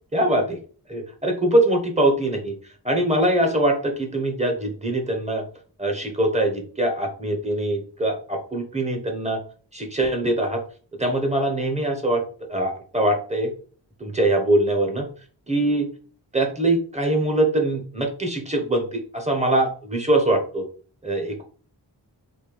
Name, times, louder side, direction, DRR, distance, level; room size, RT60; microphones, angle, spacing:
voice 1, 0.1-0.6 0.9-2.5 2.8-5.4 5.8-9.4 9.7-10.6 11.0-12.2 12.5-13.5 14.0-15.1 15.5-15.9 16.3-20.6 21.0-21.4, right 1 dB, 15° right, 2 dB, 1.1 m, -22 dB
4.3 x 2.7 x 3.4 m, 0.41 s
wide cardioid pair, 60°, 42 cm